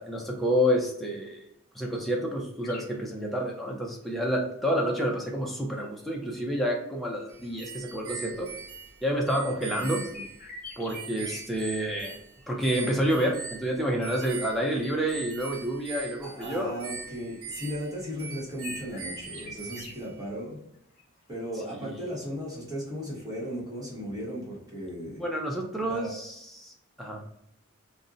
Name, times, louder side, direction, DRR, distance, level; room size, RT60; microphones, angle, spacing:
voice 1, 0.0-1.4 1.7-8.5 9.0-10.0 10.8-12.2 12.5-16.8 21.7-22.0 25.2-27.2, equal, ahead, -1 dB, 0.4 m, -29 dB
sound 1, 2.6-3.0 4.0-4.1 5.0-9.7 10.1-11.4 11.7-12.1 12.4-12.8 13.6-15.4 15.7-16.3 16.5-16.6 16.9-18.0 18.3-19.9 20.3-20.4 20.7-21.2 21.5-21.6, left 2 dB, 40° left, 0.7 m, -47 dB
sound 2, 7.3-20.2, right 5 dB, 85° right, 0.5 m, -42 dB
voice 2, 16.2-20.6 21.3-25.2 25.9-26.1, equal, 15° right, -5 dB, 0.9 m, -36 dB
2.5 x 2.1 x 3.7 m, 0.78 s
head